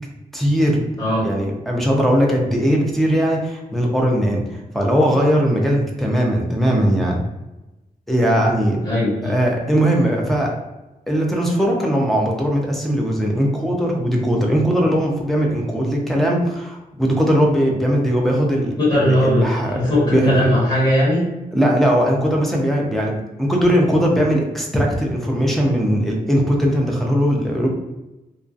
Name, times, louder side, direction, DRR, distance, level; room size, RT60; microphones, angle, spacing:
voice 1, 0.3-0.8 1.2-7.2 8.1-8.8 9.2-10.5 11.1-20.5 21.5-27.7, equal, ahead, -1 dB, 0.4 m, -19 dB
voice 2, 8.8-9.3 18.8-19.5 19.7-21.3, left 1 dB, 25° left, -9 dB, 1.3 m, -18 dB
2.6 x 2.3 x 2.4 m, 1.0 s
wide cardioid pair, 170°, 16 cm